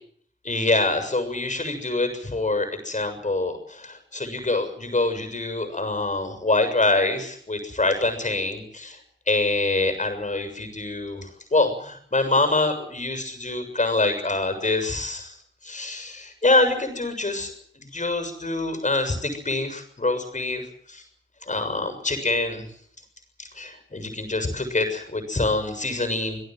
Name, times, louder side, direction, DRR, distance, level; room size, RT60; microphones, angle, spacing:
voice 1, 0.4-9.0 9.3-15.3 15.6-20.6 20.9-21.0 21.5-22.7 23.4-26.4, left 2 dB, 35° left, 8 dB, 7.0 m, -25 dB
27.0 x 18.0 x 7.8 m, 0.63 s
wide cardioid pair, 70°, 21 cm